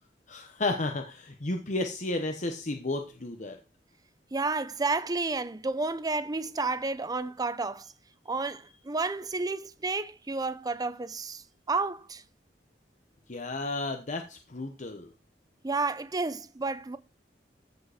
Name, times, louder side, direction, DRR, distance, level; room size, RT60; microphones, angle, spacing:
voice 1, 0.3-3.6 13.3-15.1, left 2 dB, 45° left, 1.0 m, -32 dB
voice 2, 4.3-7.9 8.3-12.2 15.6-17.0, right 3 dB, 20° right, 0.6 m, -31 dB
14.5 x 5.1 x 5.0 m
head